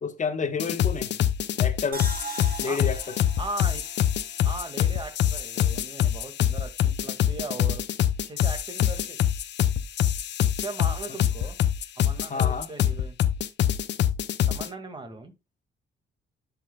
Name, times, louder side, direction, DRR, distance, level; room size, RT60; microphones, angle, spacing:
voice 1, 0.0-1.1 1.6-2.1 2.6-3.1 12.3-12.7, left 5 dB, 40° left, 1.3 m, -29 dB
sound 1, 0.6-14.7, left 10 dB, 65° left, 0.7 m, -25 dB
sound 2, 1.9-5.1 5.5-5.6, right 3 dB, 45° right, 2.1 m, -41 dB
voice 2, 3.4-3.8 4.4-7.8 8.3-9.2 10.6-11.6 12.0-13.2 14.5-15.3, right 2 dB, 25° right, 2.1 m, -38 dB
10.5 x 5.5 x 2.3 m
cardioid pair, 90°, 20 cm